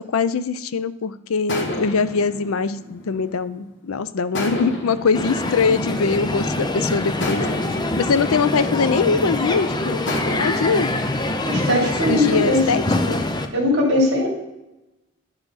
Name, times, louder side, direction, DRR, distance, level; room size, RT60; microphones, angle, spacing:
voice 1, 0.1-7.4 8.0-10.1 10.4-10.9 11.7-13.2, left 5 dB, 90° left, 14 dB, 0.5 m, -22 dB
sound 1, 1.5-3.7 4.3-6.5 7.2-9.5 10.1-11.1, left 1 dB, 55° left, 1.5 m, -31 dB
Crowd, 5.1-13.5, left 1 dB, 20° left, 0.5 m, -24 dB
voice 2, 11.4-12.7 13.5-14.3, left 1 dB, 55° right, -1 dB, 3.0 m, -20 dB
10.5 x 5.8 x 4.0 m, 0.97 s
head